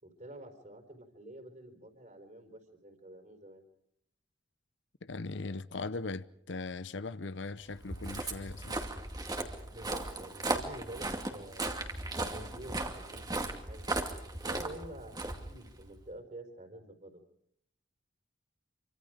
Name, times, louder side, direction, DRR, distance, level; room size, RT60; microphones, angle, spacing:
voice 1, 0.0-3.6 9.7-13.8 14.4-15.2 15.5-17.2, right 1 dB, 40° right, 4.3 m, -48 dB
voice 2, 5.0-8.8, left 3 dB, 70° left, 0.8 m, -39 dB
Walk footsteps, 7.7-16.0, right 2 dB, 20° right, 2.4 m, -37 dB
27.0 x 25.5 x 5.0 m
head